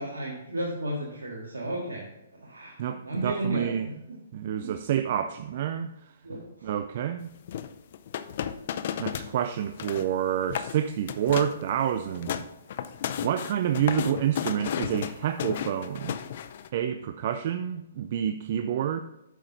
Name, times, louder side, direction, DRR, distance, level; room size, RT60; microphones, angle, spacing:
voice 1, 0.0-2.0 2.4-2.8 3.0-3.7 4.1-4.2 6.2-6.4, right 1 dB, 85° right, -3 dB, 1.8 m, -32 dB
voice 2, 2.8-3.9 4.3-5.9 6.6-7.3 9.0-12.5 13.2-16.2 16.7-19.0, right 9 dB, 50° right, 10 dB, 0.4 m, -28 dB
sound 1, 7.5-9.3 9.6-10.1 10.4-10.8 11.1-11.6 12.0-16.7, left 9 dB, 55° left, 0.5 m, -33 dB
9.1 x 6.2 x 4.0 m, 0.91 s
hypercardioid pair, 135°, 0 cm